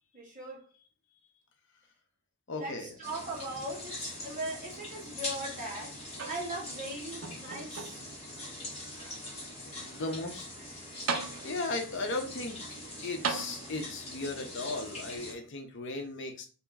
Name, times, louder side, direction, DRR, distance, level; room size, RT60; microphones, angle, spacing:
voice 1, 0.1-0.7 2.6-6.0 6.2-10.0 10.6-11.0, right 1 dB, 35° right, 1.6 m, -41 dB
voice 2, 2.5-2.9 9.6-10.5 11.4-12.6 13.0-16.5, left 2 dB, 55° left, 0.6 m, -36 dB
sound 1, 3.0-15.3, left 1 dB, 30° left, 1.4 m, -43 dB
sound 2, 6.1-6.8 7.2-8.2 8.9-9.0 10.6-10.7 11.1-11.8 13.2-14.1 15.2-15.3, right 5 dB, 65° right, 0.5 m, -37 dB
3.0 x 2.8 x 3.4 m
head